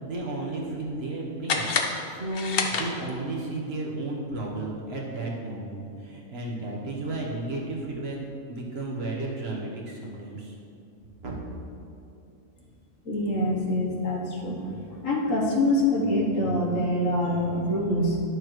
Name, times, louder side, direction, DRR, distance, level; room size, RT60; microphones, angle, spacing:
voice 1, 0.0-1.7 2.1-8.2 8.5-10.5 11.2-11.4, right 2 dB, 50° right, -2 dB, 1.3 m, -33 dB
sound 1, 1.4-3.4, left 4 dB, 55° left, 0.8 m, -29 dB
voice 2, 13.0-14.6 15.0-18.2, left 1 dB, 70° left, -2 dB, 1.5 m, -25 dB
11.0 x 6.5 x 3.1 m, 2.6 s
omnidirectional pair, 1.4 m